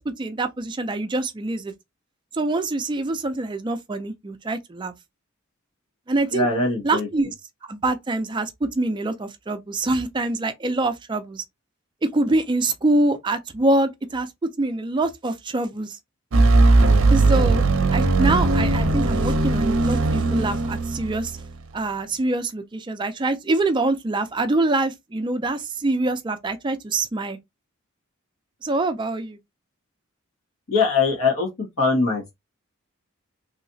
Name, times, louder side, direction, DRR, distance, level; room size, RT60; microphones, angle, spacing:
voice 1, 0.0-1.7 2.3-4.9 6.1-6.5 6.8-7.3 7.7-11.4 12.0-16.0 17.1-17.6 17.9-21.4 21.7-27.4 28.6-29.4, right 2 dB, 20° right, 0.3 m, -25 dB
voice 2, 6.3-7.1 30.7-31.5 31.8-32.3, left 3 dB, 85° left, 1.6 m, -21 dB
sound 1, 16.3-21.6, right 2 dB, 70° right, 0.6 m, -19 dB
3.1 x 2.8 x 2.6 m
head